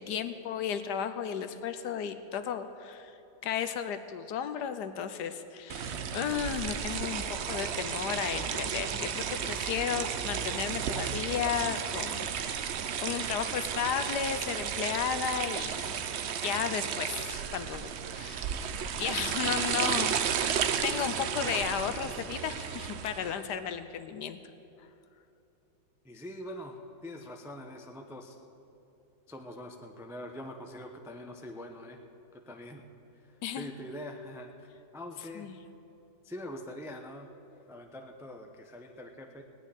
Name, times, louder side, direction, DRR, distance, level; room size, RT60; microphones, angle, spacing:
voice 1, 0.0-3.1 3.4-12.7 13.0-16.0 16.4-18.4 19.0-20.6 20.8-24.4 33.4-33.7 35.4-35.6, left 8 dB, 75° left, 10 dB, 1.2 m, -34 dB
sound 1, 5.7-23.4, right 7 dB, 75° right, 0.6 m, -33 dB
voice 2, 26.0-28.4 29.3-32.0 32.5-32.9 33.5-34.7 34.9-35.5 36.2-37.3 37.7-39.4, left 1 dB, 5° right, 3 dB, 0.3 m, -43 dB
17.5 x 6.3 x 9.9 m, 2.8 s
omnidirectional pair, 1.9 m